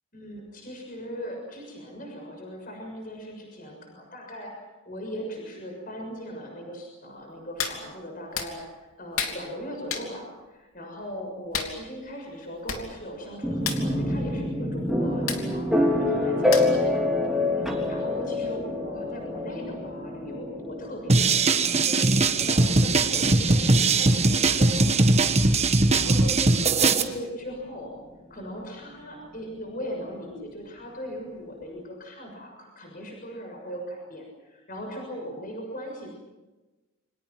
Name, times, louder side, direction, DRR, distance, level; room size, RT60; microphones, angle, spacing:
voice 1, 0.1-4.5 4.8-25.3 25.9-27.9 28.3-36.1, equal, 40° left, 1 dB, 6.7 m, -38 dB
Hands, 7.6-7.8 8.3-8.5 9.2-9.4 9.9-10.1 11.5-11.7 12.4-12.5 12.7-12.9 13.1-13.3 13.6-13.8 15.3-15.4 16.5-16.9 17.3-17.4, left 7 dB, 80° left, 3.1 m, -30 dB
sound 1, 13.4-27.2, left 2 dB, ahead, 3.2 m, -28 dB
sound 2, 21.1-27.0, right 3 dB, 30° right, 1.3 m, -20 dB
29.0 x 25.5 x 6.1 m, 1.2 s
head